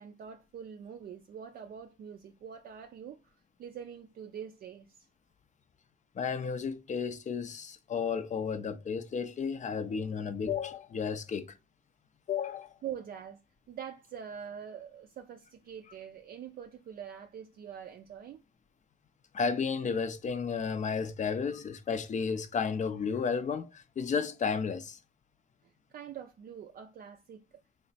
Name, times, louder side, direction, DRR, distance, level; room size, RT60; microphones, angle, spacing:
voice 1, 0.0-5.1 12.8-13.4 13.7-18.4 25.6-27.6, right 8 dB, 50° right, 0.4 m, -44 dB
voice 2, 6.2-11.5 12.3-12.7 19.3-25.0, left 6 dB, 40° left, 0.5 m, -33 dB
3.1 x 2.0 x 4.0 m
cardioid pair, 90°, 20 cm